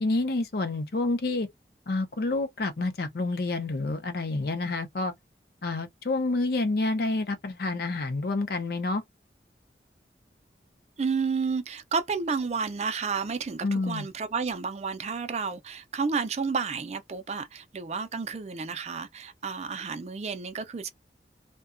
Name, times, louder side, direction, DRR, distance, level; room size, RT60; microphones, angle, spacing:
voice 1, 0.0-1.5 1.9-5.1 5.6-9.0 13.6-14.1, left 2 dB, 60° left, 0.5 m, -28 dB
voice 2, 11.0-20.9, right 5 dB, 40° right, 0.4 m, -31 dB
2.7 x 2.2 x 2.4 m
head